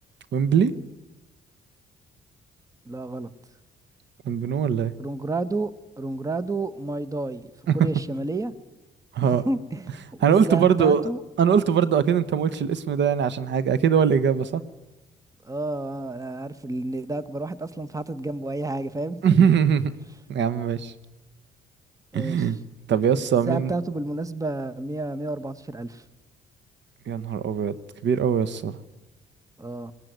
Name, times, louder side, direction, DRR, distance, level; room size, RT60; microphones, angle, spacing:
voice 1, 0.3-0.7 4.2-4.9 7.7-7.8 9.1-9.4 10.2-11.1 11.4-14.6 19.2-19.8 20.3-20.9 22.1-22.6 22.9-23.7 27.1-27.7 28.0-28.8, right 7 dB, 65° right, 15 dB, 1.1 m, -21 dB
voice 2, 2.9-3.3 5.0-5.7 6.0-7.5 7.7-8.5 9.2-11.2 15.4-19.4 22.1-22.5 23.4-26.0 29.6-29.9, right 2 dB, 15° right, 15 dB, 1.1 m, -30 dB
20.5 x 18.5 x 9.3 m, 1.1 s
cardioid pair, 90°, 20 cm